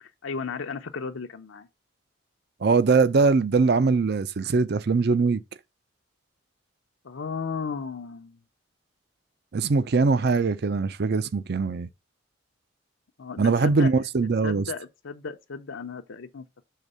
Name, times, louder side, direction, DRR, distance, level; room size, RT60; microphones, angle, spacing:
voice 1, 0.0-1.7 7.0-8.4 13.2-13.9 14.4-16.6, left 5 dB, 90° left, 0.6 m, -35 dB
voice 2, 2.6-5.4 9.5-11.9 13.4-14.6, right 4 dB, 55° right, 0.5 m, -22 dB
6.6 x 3.6 x 5.4 m
head